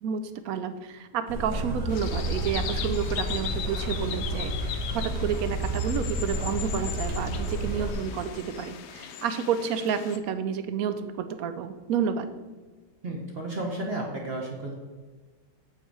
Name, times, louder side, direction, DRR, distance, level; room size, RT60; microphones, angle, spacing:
voice 1, 0.0-12.3, right 7 dB, 70° right, 10 dB, 0.9 m, -30 dB
sound 1, 1.3-7.9, right 1 dB, 85° right, 1.8 m, -31 dB
sound 2, 1.9-10.2, left 9 dB, 80° left, 1.2 m, -38 dB
voice 2, 13.0-14.7, right 2 dB, 45° right, -1 dB, 1.0 m, -32 dB
8.0 x 4.3 x 4.6 m, 1.4 s
omnidirectional pair, 1.8 m